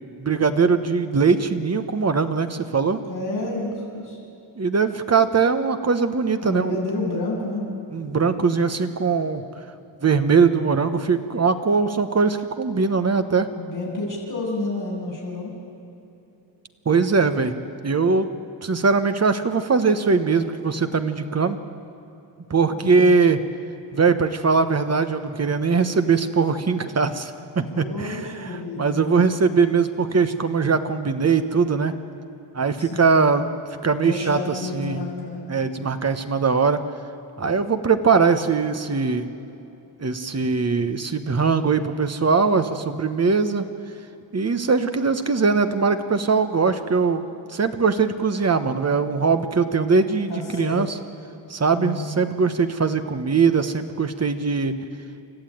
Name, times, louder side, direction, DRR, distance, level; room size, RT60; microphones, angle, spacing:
voice 1, 0.2-3.0 4.6-6.8 7.9-9.4 10.0-13.5 16.8-17.5 17.8-18.3 18.6-21.6 22.5-23.4 23.9-31.9 32.5-33.5 33.8-35.0 35.5-36.8 37.4-39.3 40.0-43.6 44.3-51.0 51.5-54.7, right 5 dB, 35° right, 9 dB, 1.2 m, -21 dB
voice 2, 3.0-4.2 6.4-7.7 13.5-15.5 22.7-23.2 27.7-28.9 32.8-33.2 34.0-35.5 50.3-50.8 51.7-52.2, left 2 dB, 40° left, -5 dB, 6.8 m, -30 dB
29.5 x 14.0 x 9.3 m, 2.8 s
wide cardioid pair, 180°, 45 cm